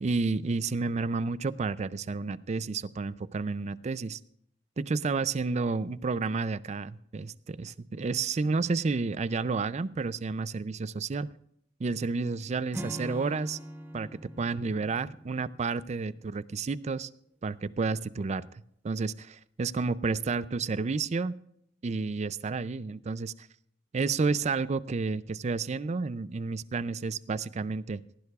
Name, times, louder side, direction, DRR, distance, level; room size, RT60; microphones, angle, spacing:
voice 1, 0.0-4.2 4.8-11.3 11.8-13.6 13.9-14.1 14.4-17.1 17.4-18.5 18.8-21.3 21.8-23.5 23.9-28.0, right 4 dB, 35° right, 17 dB, 0.4 m, -31 dB
Acoustic guitar / Strum, 12.7-16.2, right 1 dB, 10° right, 1.0 m, -43 dB
18.0 x 15.5 x 2.4 m, 0.69 s
head